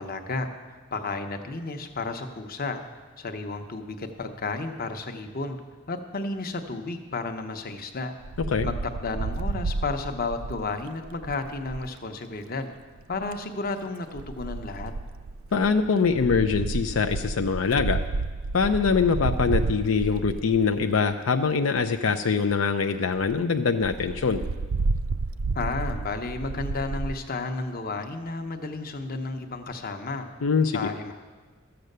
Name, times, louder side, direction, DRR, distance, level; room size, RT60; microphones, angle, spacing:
voice 1, 0.0-2.8 3.2-5.6 5.9-8.1 8.6-12.7 13.1-14.9 25.5-30.3 30.6-31.1, left 3 dB, 45° left, 6 dB, 0.9 m, -32 dB
Wind, 8.2-11.9 13.0-13.4 14.2-21.1 21.7-21.8 22.1-22.2 22.5-22.6 22.9-23.0 23.2-23.4 23.8-27.1, right 3 dB, 70° right, 0.4 m, -31 dB
voice 2, 15.5-18.0 18.5-24.4 30.4-30.9, left 5 dB, 80° left, 6 dB, 0.5 m, -23 dB
13.5 x 7.8 x 6.7 m, 1.4 s
head